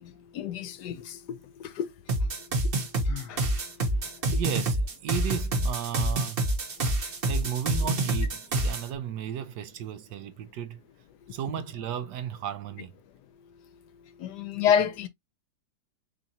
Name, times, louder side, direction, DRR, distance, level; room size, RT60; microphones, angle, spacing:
voice 1, 0.3-1.2 1.8-1.9 3.3-3.4 14.2-15.1, left 8 dB, 70° left, 1.2 m, -27 dB
sound 1, 2.1-8.9, right 1 dB, 45° right, 0.8 m, -27 dB
Sigh, 3.1-3.6, left 11 dB, 50° left, 1.3 m, -41 dB
voice 2, 4.3-6.5 7.3-10.8 11.3-12.9, right 9 dB, 75° right, 1.2 m, -34 dB
4.1 x 3.7 x 2.7 m
omnidirectional pair, 1.9 m